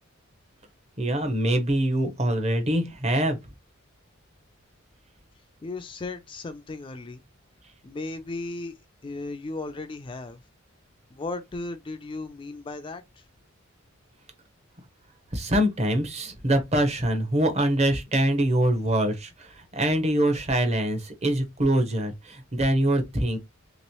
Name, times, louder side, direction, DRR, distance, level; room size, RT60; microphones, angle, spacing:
voice 1, 1.0-3.4 15.3-23.4, right 1 dB, 30° right, 0.8 m, -24 dB
voice 2, 5.6-7.2 7.8-8.8 9.0-10.4 11.1-13.2, left 2 dB, 25° left, 0.3 m, -36 dB
3.0 x 3.0 x 2.9 m
head